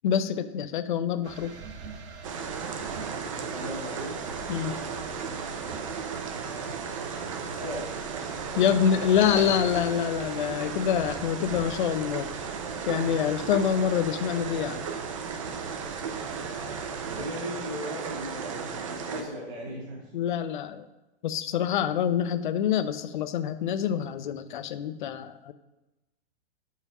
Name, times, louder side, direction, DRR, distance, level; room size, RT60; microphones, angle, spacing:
voice 1, 0.0-1.6 4.5-4.8 8.6-12.3 12.9-14.9 20.1-20.9 21.2-25.5, left 9 dB, 50° left, 11 dB, 0.5 m, -26 dB
sound 1, 1.2-17.2, right 4 dB, 80° right, 1.2 m, -43 dB
sound 2, 2.2-19.2, right 6 dB, 30° right, 0.5 m, -35 dB
voice 2, 3.5-4.2 7.4-8.0 16.3-16.8 17.1-20.1, equal, 15° right, -6 dB, 1.4 m, -38 dB
5.6 x 5.4 x 6.0 m, 1.0 s
hypercardioid pair, 175°, 33 cm